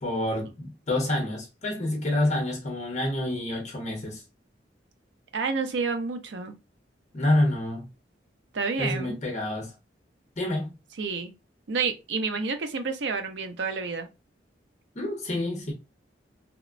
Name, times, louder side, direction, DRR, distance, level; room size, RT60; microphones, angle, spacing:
voice 1, 0.0-4.2 7.1-7.8 8.8-9.7 10.4-10.8 14.9-15.7, left 1 dB, 40° left, 0.7 m, -28 dB
voice 2, 5.3-6.5 8.5-9.2 11.0-11.3 11.7-14.1, right 4 dB, 75° right, 0.5 m, -29 dB
2.9 x 2.0 x 2.4 m
head